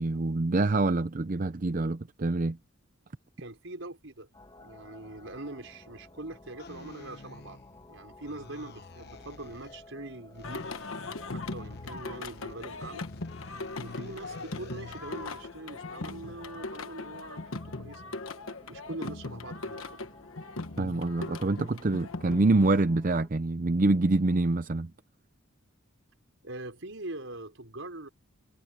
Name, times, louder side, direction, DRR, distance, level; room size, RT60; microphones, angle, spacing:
voice 1, 0.0-2.6 20.8-24.9, right 2 dB, 40° right, 0.6 m, -26 dB
voice 2, 3.4-4.3 4.6-7.6 7.9-10.7 11.3-13.1 13.8-18.0 18.7-20.1 26.4-28.1, right 2 dB, 70° right, 5.3 m, -43 dB
sound 1, 4.3-23.3, left 1 dB, 20° left, 2.0 m, -54 dB
sound 2, 6.6-7.9 8.2-9.9 10.3-15.5, left 3 dB, 50° left, 1.1 m, -51 dB
Singing, 10.4-22.8, left 3 dB, 85° left, 1.3 m, -39 dB
head